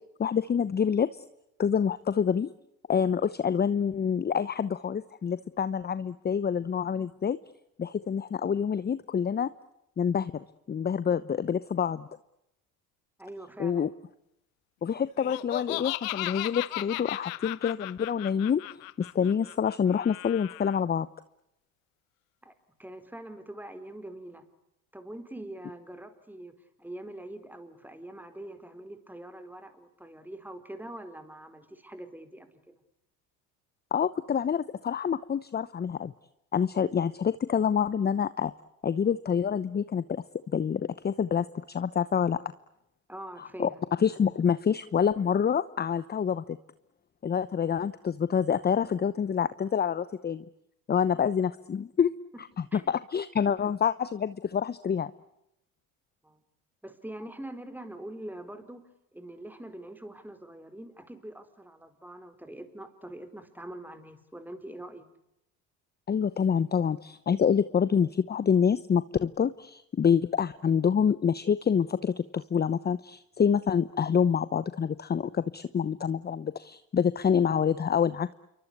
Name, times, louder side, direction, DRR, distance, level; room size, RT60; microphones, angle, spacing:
voice 1, 0.2-1.2 1.6-2.5 2.9-7.4 7.8-9.5 10.0-12.1 13.6-13.9 14.8-18.6 19.0-21.1 33.9-36.1 36.5-38.5 38.8-40.2 40.5-42.4 43.4-43.7 44.0-46.6 47.2-50.4 50.9-52.1 52.9-55.1 66.1-78.3, left 7 dB, 25° left, 15 dB, 1.0 m, -27 dB
voice 2, 13.2-13.9 22.4-24.4 24.9-32.8 43.1-43.8 52.7-53.0 56.2-56.4 56.8-58.8 59.1-65.1, right 1 dB, 5° right, 10 dB, 4.6 m, -44 dB
Laughter, 15.2-20.8, left 21 dB, 90° left, 1.0 m, -36 dB
28.0 x 24.0 x 8.2 m, 0.83 s
supercardioid pair, 95°, 40 cm